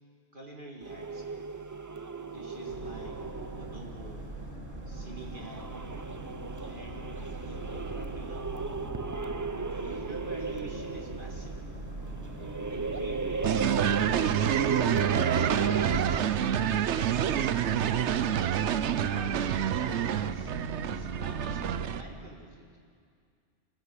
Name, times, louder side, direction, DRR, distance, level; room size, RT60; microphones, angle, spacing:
voice 1, 0.3-1.4 2.2-3.2 3.6-4.3 4.9-5.9 6.6-8.5 9.6-11.6 12.7-14.6 15.3-16.1 16.6-18.5 18.9-20.5 20.9-22.8, right 2 dB, 45° right, 0 dB, 1.9 m, -47 dB
sound 1, 0.8-16.5, right 4 dB, 30° right, 0.3 m, -36 dB
Boat Water vehicle, 2.7-22.1, right 2 dB, 85° right, 3.3 m, -41 dB
sound 2, 13.4-22.0, right 10 dB, 70° right, 1.0 m, -28 dB
25.0 x 15.0 x 8.3 m, 2.3 s
omnidirectional pair, 1.3 m